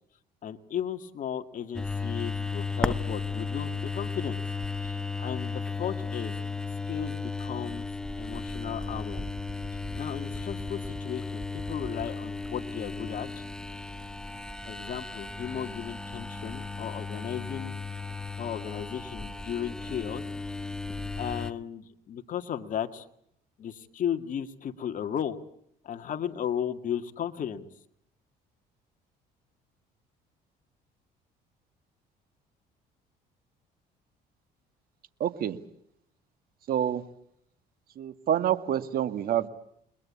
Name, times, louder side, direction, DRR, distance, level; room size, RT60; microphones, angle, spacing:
voice 1, 0.4-4.4 4.8-6.4 6.9-7.8 8.2-9.2 9.7-13.4 14.6-17.7 18.4-20.2 21.2-23.1 23.6-25.4 25.8-27.6, left 9 dB, 50° left, 7 dB, 2.0 m, -35 dB
sound 1, 1.7-21.5, left 3 dB, 5° left, 1.2 m, -35 dB
voice 2, 35.2-35.6 36.7-37.0 38.0-39.5, right 10 dB, 60° right, 12 dB, 1.8 m, -27 dB
29.5 x 21.5 x 8.5 m, 0.71 s
cardioid pair, 110°, 17 cm